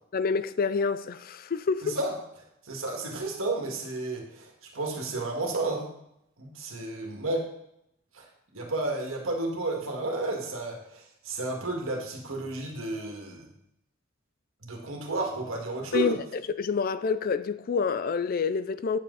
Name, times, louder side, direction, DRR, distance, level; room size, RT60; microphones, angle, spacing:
voice 1, 0.1-2.0 15.9-19.0, left 5 dB, 45° left, 0.4 m, -28 dB
voice 2, 1.8-2.1 2.6-5.9 6.4-7.5 8.1-8.2 8.5-13.5 14.6-16.2, right 2 dB, 80° right, 2.1 m, -32 dB
9.1 x 7.3 x 4.0 m
head